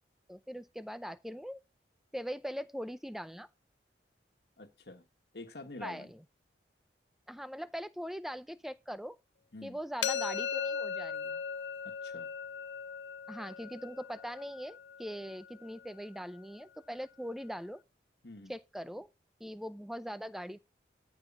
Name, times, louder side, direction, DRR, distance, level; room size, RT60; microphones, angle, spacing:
voice 1, 0.3-1.6 2.1-3.5 5.8-6.2 7.3-9.2 9.6-11.4 13.3-17.8 18.5-19.1 19.4-20.6, equal, ahead, 0.5 m, -41 dB
voice 2, 4.6-5.1 5.3-6.1 9.5-9.8 11.8-12.3 18.2-18.5, left 2 dB, 65° left, 1.5 m, -47 dB
sound 1, 10.0-15.8, left 6 dB, 85° left, 0.6 m, -38 dB
13.0 x 4.8 x 7.3 m
head